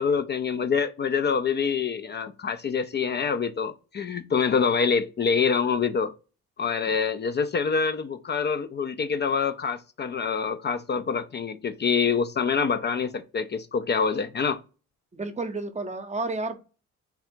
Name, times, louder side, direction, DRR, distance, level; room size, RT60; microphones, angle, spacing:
voice 1, 0.0-6.1 6.6-14.6, left 6 dB, 35° left, 0.4 m, -26 dB
voice 2, 15.1-16.6, right 3 dB, 25° right, 0.7 m, -31 dB
3.5 x 2.4 x 4.3 m
cardioid pair, 90°, 30 cm